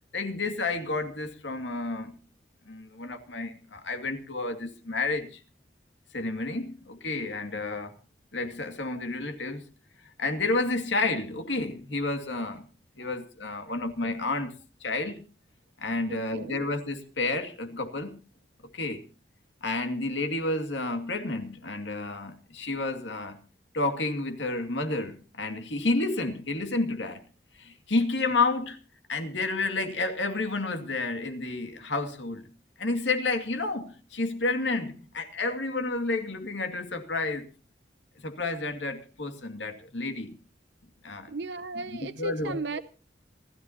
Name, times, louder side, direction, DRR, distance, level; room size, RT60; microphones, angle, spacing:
voice 1, 0.1-2.2 2.7-5.4 6.1-7.9 8.3-9.6 10.2-12.6 13.0-14.5 14.8-15.2 15.8-18.2 18.7-19.0 19.6-23.4 23.7-27.2 27.6-28.8 29.1-32.5 32.8-37.5 38.2-40.4 41.0-41.3 41.9-42.6, left 3 dB, 90° left, 2.4 m, -30 dB
voice 2, 16.1-16.6 41.3-42.8, right 3 dB, 70° right, 0.7 m, -36 dB
27.5 x 13.5 x 2.9 m
head